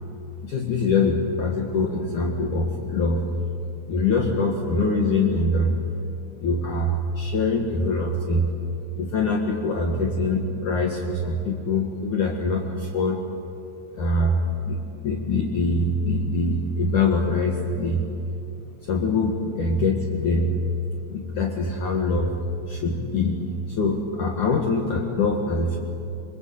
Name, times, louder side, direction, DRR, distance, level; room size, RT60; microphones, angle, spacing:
voice 1, 0.4-3.2 3.9-5.8 6.4-8.5 9.0-13.2 13.9-18.1 18.8-20.6 21.1-22.3 22.7-25.8, left 2 dB, 55° left, 0 dB, 2.7 m, -24 dB
28.0 x 23.5 x 8.7 m, 2.8 s
omnidirectional pair, 5.2 m